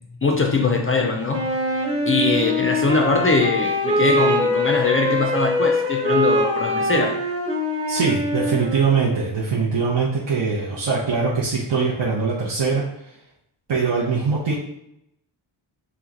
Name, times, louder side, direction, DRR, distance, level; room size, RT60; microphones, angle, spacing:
voice 1, 0.2-1.5 2.0-7.1, left 3 dB, 30° left, 1 dB, 0.4 m, -21 dB
Wind instrument woodwind instrument, 1.3-9.3, left 1 dB, 25° right, 1.2 m, -23 dB
voice 2, 7.9-12.8 13.7-14.5, right 5 dB, 60° right, -6 dB, 0.7 m, -22 dB
3.0 x 2.1 x 3.6 m, 0.81 s
wide cardioid pair, 130°, 49 cm